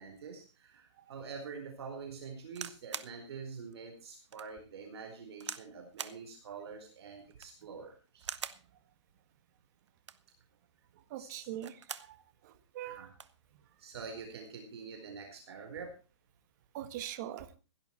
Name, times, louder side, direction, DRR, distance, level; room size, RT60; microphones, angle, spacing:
voice 1, 0.0-8.5 11.2-11.5 12.8-13.1 13.8-16.0, right 5 dB, 60° right, 4.5 m, -46 dB
sound 1, 2.5-3.2 3.7-3.8 4.3-4.5 5.4-5.7 6.0-6.2 7.2-7.6 8.2-8.7 9.9-10.3 11.4-12.1 12.5-12.6 12.9-13.4 14.2-14.5, right 7 dB, 80° right, 1.2 m, -43 dB
voice 2, 11.1-12.2 12.4-13.1 16.7-17.5, right 12 dB, 40° right, 1.6 m, -42 dB
17.0 x 12.0 x 4.5 m
hypercardioid pair, 145°, 15 cm